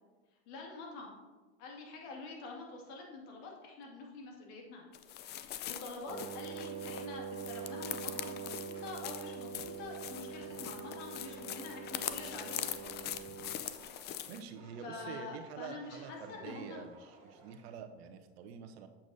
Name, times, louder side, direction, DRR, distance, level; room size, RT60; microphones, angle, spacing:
voice 1, 0.5-1.2 1.6-4.9 5.5-13.1 14.8-16.8, left 3 dB, 55° left, 0 dB, 2.2 m, -46 dB
sound 1, 4.9-14.4, left 11 dB, 30° left, 0.4 m, -43 dB
Wind instrument woodwind instrument, 6.1-13.7, right 6 dB, 25° right, 0.7 m, -44 dB
Fire, 7.5-9.1 10.4-10.9 11.2-15.4 15.9-17.7, right 2 dB, 40° right, 1.9 m, -59 dB
voice 2, 14.3-18.9, right 6 dB, 70° right, 7 dB, 0.9 m, -47 dB
7.8 x 7.1 x 2.7 m, 1.3 s
hypercardioid pair, 100°, 33 cm